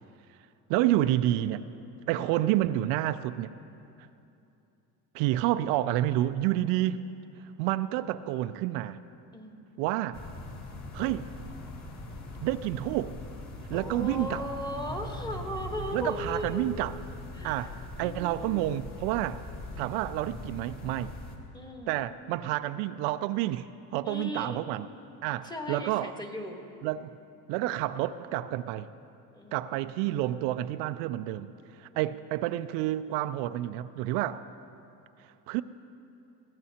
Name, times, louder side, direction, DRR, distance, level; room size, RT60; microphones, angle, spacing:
voice 1, 0.7-1.6 2.1-3.5 5.1-7.0 7.6-9.0 9.8-10.2 10.9-11.3 12.4-13.2 13.7-14.5 15.9-17.0 17.4-19.4 19.8-21.1 21.9-23.7 23.9-24.9 25.2-26.2 26.8-27.1 27.5-28.9 29.5-34.4 35.5-35.6, right 14 dB, 75° right, 12 dB, 0.5 m, -29 dB
sound 1, 10.1-21.4, left 2 dB, 40° left, 2.0 m, -41 dB
voice 2, 13.7-16.8 17.3-17.7 18.0-18.7 21.5-22.0 24.0-24.6 25.4-26.6 29.3-29.7 31.9-32.1, left 1 dB, 10° left, 3 dB, 1.3 m, -37 dB
21.5 x 16.0 x 2.9 m, 2.7 s
cardioid pair, 120°, 43 cm